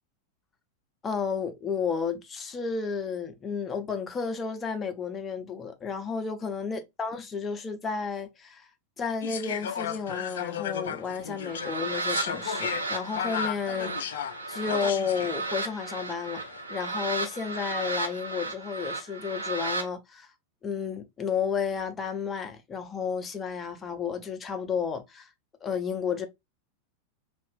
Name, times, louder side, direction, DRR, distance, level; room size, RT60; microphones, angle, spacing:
voice 1, 1.0-8.7 9.0-20.3 20.6-25.3 25.6-26.3, left 6 dB, 20° left, 0.7 m, -32 dB
sound 1, 9.2-15.5 16.3-16.6, left 8 dB, 60° left, 0.4 m, -35 dB
sound 2, 11.4-19.9, right 3 dB, 80° right, 0.6 m, -34 dB
3.2 x 2.4 x 3.4 m
figure-of-eight pair, 90°, 0 cm